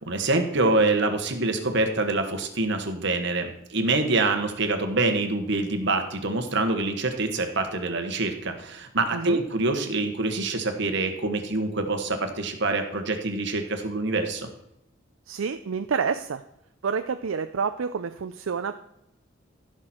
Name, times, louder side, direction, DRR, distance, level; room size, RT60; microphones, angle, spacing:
voice 1, 0.0-14.5, right 2 dB, 60° right, 6 dB, 1.4 m, -25 dB
voice 2, 15.3-16.4 16.8-18.8, right 6 dB, 90° right, 9 dB, 0.5 m, -28 dB
15.5 x 6.0 x 4.4 m, 0.84 s
head